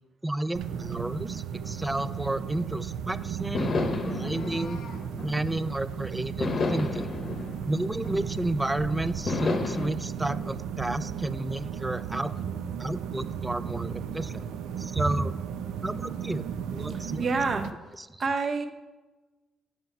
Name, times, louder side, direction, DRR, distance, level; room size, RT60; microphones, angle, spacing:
voice 1, 0.2-4.8 5.2-7.1 7.6-12.4 12.8-14.5 14.8-15.3 15.8-16.5 16.7-17.3 18.1-18.2, right 1 dB, 10° right, 14 dB, 0.3 m, -32 dB
sound 1, 0.5-17.7, right 8 dB, 85° right, 0.4 m, -35 dB
sound 2, 2.9-3.0 3.5-5.8 6.4-8.7 9.3-9.9, left 3 dB, 50° left, 0.8 m, -31 dB
Meow, 4.0-5.0, left 5 dB, 85° left, 0.8 m, -48 dB
voice 2, 16.9-17.7 18.2-18.7, right 4 dB, 45° right, 6 dB, 0.8 m, -28 dB
7.6 x 4.6 x 5.4 m, 1.2 s
cardioid pair, 90°, 0 cm